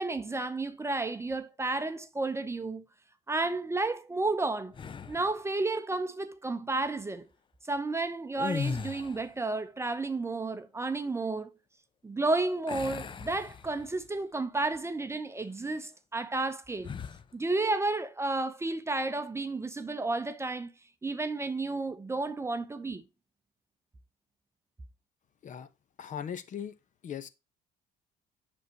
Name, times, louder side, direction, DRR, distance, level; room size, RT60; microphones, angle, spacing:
voice 1, 0.0-2.8 3.3-4.7 5.1-7.3 7.6-11.5 12.0-16.9 17.3-20.7 21.0-23.0, right 2 dB, 15° right, 0.7 m, -32 dB
sound 1, 4.7-5.4 8.3-9.4 12.7-14.1 14.6-14.8 16.8-17.3, left 5 dB, 30° left, 0.6 m, -37 dB
voice 2, 26.0-26.7 27.0-27.3, left 8 dB, 45° left, 1.0 m, -38 dB
8.0 x 6.4 x 2.9 m
cardioid pair, 110°, 17 cm